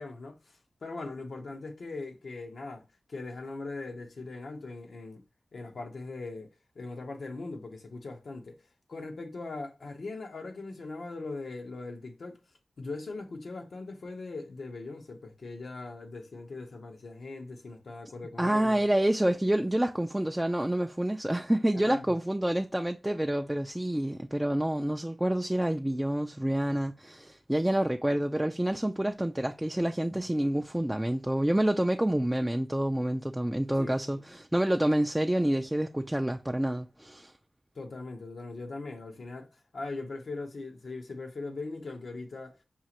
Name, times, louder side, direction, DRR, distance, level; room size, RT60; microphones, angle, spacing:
voice 1, 0.0-2.8 3.1-5.2 5.5-6.5 6.7-8.6 8.9-12.4 12.8-18.8 21.7-22.1 33.8-34.2 37.7-39.5 39.7-42.6, left 3 dB, 80° left, 0.8 m, -40 dB
voice 2, 18.4-37.3, right 1 dB, 10° right, 0.3 m, -28 dB
5.5 x 2.4 x 2.9 m
cardioid pair, 55°, 0 cm